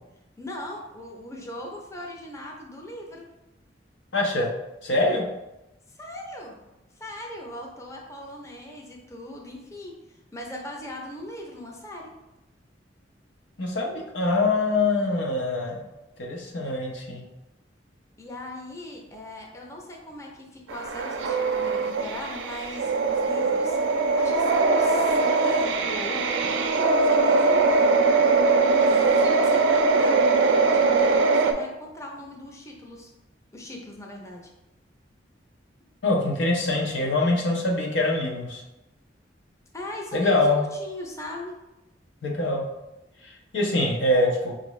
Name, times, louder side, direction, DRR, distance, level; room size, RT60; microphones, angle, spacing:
voice 1, 0.4-3.3 5.9-6.6 7.0-12.1 18.2-27.9 28.7-33.1 33.5-34.5 39.7-41.5, left 1 dB, 15° left, -1 dB, 0.5 m, -39 dB
voice 2, 4.1-4.5 4.8-5.2 13.6-15.8 16.2-17.2 36.0-38.6 40.1-40.6 42.2-42.6 43.2-44.5, left 2 dB, 85° left, -1 dB, 0.8 m, -24 dB
sound 1, 20.7-31.5, right 3 dB, 90° right, 0.4 m, -21 dB
4.7 x 2.6 x 3.1 m, 0.96 s
head